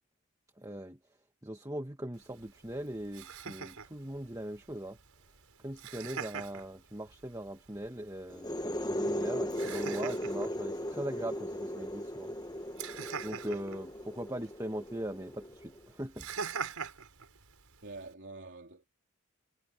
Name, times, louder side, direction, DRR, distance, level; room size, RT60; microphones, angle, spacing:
voice 1, 0.6-1.0 1.4-5.0 5.6-12.3 13.2-16.3, right 1 dB, 15° right, 1.7 m, -40 dB
Laughter, 2.1-18.1, right 6 dB, 80° right, 4.7 m, -45 dB
sound 1, 8.3-15.8, equal, 20° left, 1.2 m, -37 dB
voice 2, 17.8-18.9, right 3 dB, 55° right, 3.5 m, -46 dB
head